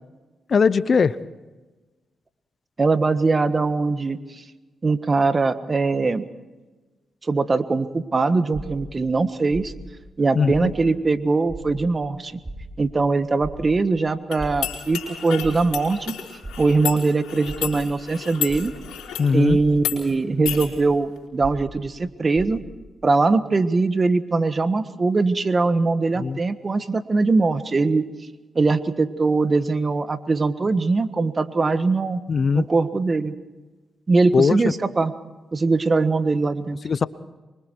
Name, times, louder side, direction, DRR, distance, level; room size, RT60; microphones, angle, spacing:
voice 1, 0.5-1.1 10.4-10.7 19.2-19.6 26.2-26.4 32.3-32.6 34.3-34.6 36.8-37.1, left 5 dB, 55° left, 17 dB, 0.7 m, -19 dB
voice 2, 2.8-4.2 4.8-6.2 7.2-9.7 10.2-12.4 12.8-16.1 16.6-18.7 19.3-22.6 23.0-28.1 28.5-32.2 32.5-33.3 34.1-35.1 35.5-36.8, right 3 dB, 40° right, 12 dB, 1.4 m, -21 dB
sound 1, 8.5-11.2 11.4-19.0 19.4-22.9, right 1 dB, 25° right, 7.4 m, -39 dB
sound 2, 14.3-19.3 19.8-20.0 20.5-20.7, left 10 dB, 90° left, 3.7 m, -32 dB
25.5 x 23.5 x 4.6 m, 1.2 s
supercardioid pair, 50°, 0 cm